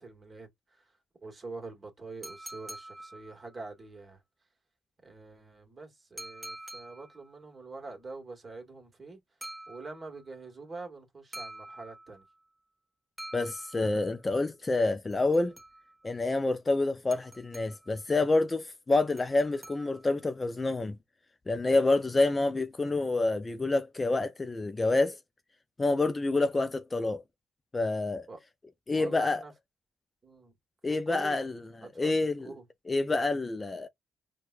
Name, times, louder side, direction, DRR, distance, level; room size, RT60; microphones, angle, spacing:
voice 1, 0.0-4.2 5.0-9.2 9.7-12.2 28.3-28.4 28.9-29.5 30.2-30.5 30.9-31.4 31.8-32.6, right 3 dB, 30° right, 1.5 m, -45 dB
sound 1, 2.2-3.7 6.2-7.3 9.4-10.3 11.3-12.4 13.2-14.2 15.1-16.1 17.1-18.0 19.2-20.3, right 1 dB, 10° right, 1.0 m, -46 dB
voice 2, 13.3-15.5 16.0-21.0 21.5-25.2 25.8-27.2 27.7-28.3 28.9-29.4 30.8-31.6 32.0-32.5 32.9-33.9, left 2 dB, 25° left, 0.4 m, -28 dB
4.5 x 2.2 x 2.4 m
cardioid pair, 90°, 0 cm